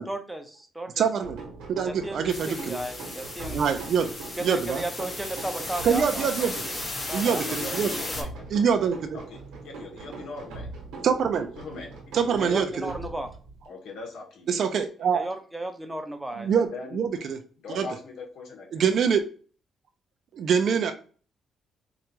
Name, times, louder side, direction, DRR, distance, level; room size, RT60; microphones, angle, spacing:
voice 1, 0.0-1.1 1.8-3.8 4.4-6.8 7.1-8.3 12.4-13.3 15.1-16.5, right 1 dB, 10° right, 6 dB, 0.7 m, -35 dB
voice 2, 1.0-1.4 1.7-2.8 3.5-4.1 4.4-4.8 5.8-6.5 7.1-7.9 8.5-9.2 11.0-11.5 12.1-12.9 14.5-15.3 16.4-17.4 17.8-17.9 18.7-19.2 20.3-20.9, right 7 dB, 65° right, 7 dB, 0.6 m, -24 dB
sound 1, 1.2-13.7, right 3 dB, 90° right, 1.3 m, -41 dB
sound 2, 2.3-8.2, left 2 dB, 30° left, 1.3 m, -35 dB
voice 3, 7.2-10.7 11.6-12.5 13.6-14.6 16.6-17.0 17.6-18.8, left 4 dB, 75° left, 0 dB, 1.3 m, -41 dB
4.7 x 2.5 x 2.9 m, 0.40 s
cardioid pair, 90°, 0 cm